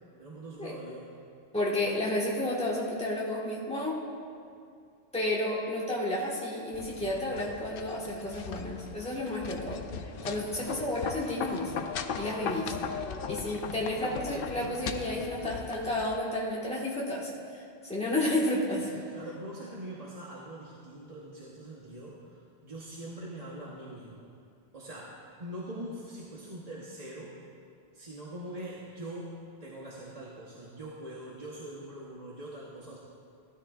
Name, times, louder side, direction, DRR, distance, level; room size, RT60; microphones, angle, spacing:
voice 1, 0.2-1.2 10.2-10.5 12.3-12.6 18.8-24.3 24.7-27.3 27.9-33.0, right 1 dB, 35° right, -5 dB, 1.1 m, -43 dB
voice 2, 1.5-4.0 5.1-9.8 10.2-11.7 12.2-12.7 13.3-18.9, left 1 dB, 5° left, -5 dB, 1.5 m, -31 dB
sound 1, 6.7-16.2, left 6 dB, 65° left, 0.7 m, -38 dB
15.5 x 12.5 x 2.4 m, 2.4 s
omnidirectional pair, 1.1 m